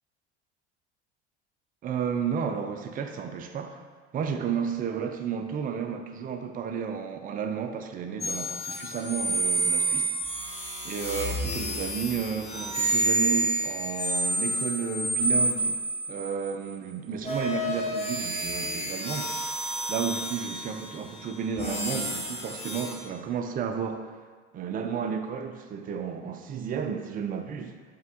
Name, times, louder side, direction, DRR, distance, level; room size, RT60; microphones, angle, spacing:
voice 1, 1.8-3.8 4.1-10.5 10.8-15.8 16.1-24.0 24.5-27.7, right 7 dB, 25° right, 7 dB, 0.4 m, -32 dB
sound 1, 8.2-16.5 17.2-22.9, right 1 dB, 20° left, 1.0 m, -29 dB
4.8 x 3.3 x 2.8 m, 1.5 s
hypercardioid pair, 70°, 33 cm